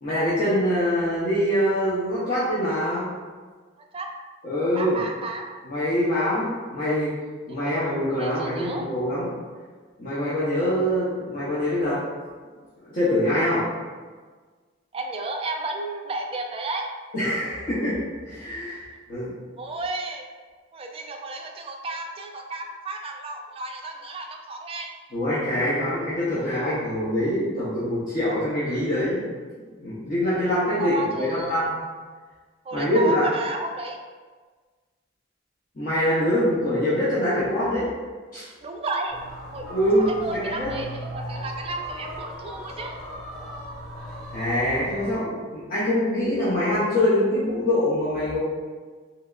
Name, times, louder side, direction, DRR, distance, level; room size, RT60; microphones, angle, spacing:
voice 1, 0.0-3.1 4.4-5.0 5.6-7.1 7.5-9.3 10.0-12.0 12.9-13.6 17.1-18.0 18.3-18.8 19.1-19.3 25.1-29.2 29.5-31.8 32.7-33.2 35.8-37.9 38.3-38.5 39.7-40.7 44.3-48.4, left 1 dB, 45° left, -11 dB, 0.7 m, -24 dB
voice 2, 4.8-5.4 7.5-7.7 8.1-8.9 14.9-16.9 19.6-20.3 20.7-24.9 30.8-31.7 32.6-34.0 38.6-39.2 39.5-43.0, right 2 dB, 30° right, 2 dB, 0.3 m, -32 dB
sound 1, 39.1-45.2, equal, ahead, 1.0 m, -38 dB
3.3 x 2.9 x 2.4 m, 1.5 s
head